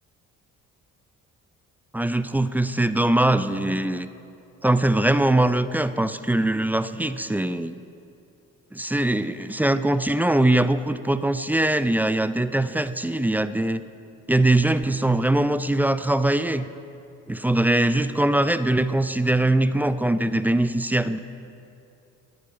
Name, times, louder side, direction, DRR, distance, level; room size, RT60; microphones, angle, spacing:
voice 1, 1.9-4.1 4.6-7.8 8.7-13.8 14.3-16.7 17.3-21.2, right 1 dB, 5° right, 13 dB, 0.3 m, -22 dB
13.0 x 10.5 x 5.0 m, 2.7 s
supercardioid pair, 70°, 35 cm